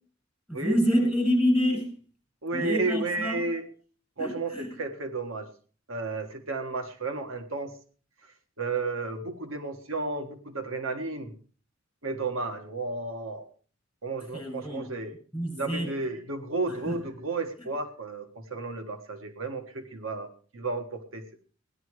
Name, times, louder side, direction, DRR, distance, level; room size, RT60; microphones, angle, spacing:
voice 1, 0.5-1.9 2.5-3.4 4.2-4.7 14.3-14.9 15.3-15.9 16.9-17.0, equal, 10° right, 1 dB, 6.7 m, -27 dB
voice 2, 2.4-3.6 4.2-5.5 5.9-7.8 8.2-11.3 12.0-13.5 14.0-15.1 15.6-21.2, right 3 dB, 85° right, 6 dB, 1.6 m, -33 dB
16.5 x 11.0 x 4.8 m, 0.41 s
head